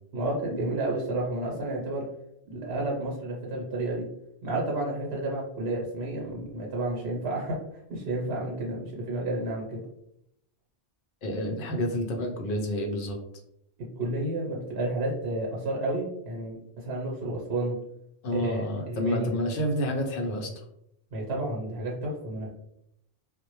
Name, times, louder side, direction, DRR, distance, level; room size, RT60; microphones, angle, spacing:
voice 1, 0.1-2.1 2.5-4.1 4.4-7.6 7.9-9.8 14.0-17.8 18.3-19.3 21.1-22.5, right 2 dB, 75° right, -3 dB, 0.9 m, -31 dB
voice 2, 11.2-13.2 18.2-20.5, equal, 60° left, 2 dB, 0.7 m, -29 dB
2.1 x 2.1 x 2.9 m, 0.78 s
omnidirectional pair, 1.1 m